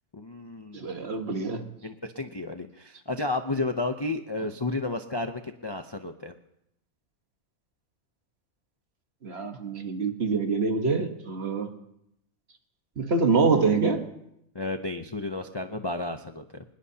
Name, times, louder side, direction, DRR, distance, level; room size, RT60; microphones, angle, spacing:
voice 1, 0.1-1.1 1.8-6.3 14.5-16.6, left 2 dB, 30° left, 6 dB, 0.5 m, -32 dB
voice 2, 0.7-1.6 9.2-11.7 13.0-14.1, right 4 dB, 50° right, 6 dB, 1.5 m, -25 dB
24.0 x 20.5 x 2.8 m, 0.80 s
omnidirectional pair, 1.5 m